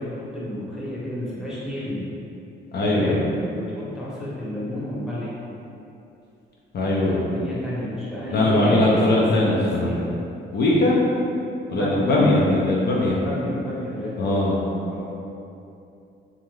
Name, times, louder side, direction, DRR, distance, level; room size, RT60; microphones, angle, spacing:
voice 1, 0.0-2.1 2.9-5.4 6.9-10.2 11.7-12.3 13.0-14.5 14.9-15.1, left 1 dB, 5° right, -8 dB, 0.8 m, -30 dB
voice 2, 2.7-3.2 6.7-7.2 8.3-9.9 10.5-11.1 11.7-13.2 14.2-14.6, left 1 dB, 55° left, -5 dB, 0.5 m, -20 dB
2.6 x 2.4 x 3.1 m, 2.7 s
cardioid pair, 90°, 20 cm